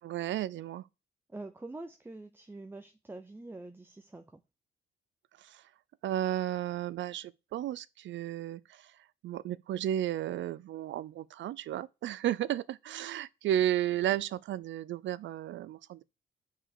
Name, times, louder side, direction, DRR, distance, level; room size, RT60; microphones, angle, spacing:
voice 1, 0.0-0.9 5.4-5.6 6.0-8.9 9.2-16.0, right 12 dB, 70° right, 0.6 m, -33 dB
voice 2, 1.3-4.4, right 2 dB, 10° right, 0.7 m, -45 dB
6.0 x 4.8 x 6.6 m
cardioid pair, 90°, 20 cm